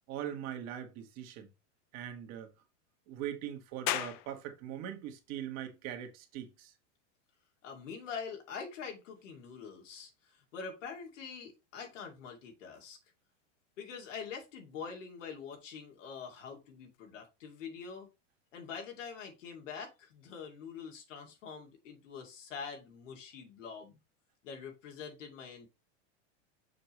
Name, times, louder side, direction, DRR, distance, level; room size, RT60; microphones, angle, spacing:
voice 1, 0.1-1.5 1.9-2.5 3.1-6.7, right 10 dB, 45° right, 1.6 m, -41 dB
sound 1, 3.9-17.0, left 14 dB, 35° left, 0.4 m, -47 dB
voice 2, 7.6-13.0 13.8-18.1 18.5-24.0 24.4-25.7, left 6 dB, 85° left, 2.5 m, -45 dB
6.7 x 5.2 x 3.1 m
supercardioid pair, 135°, 37 cm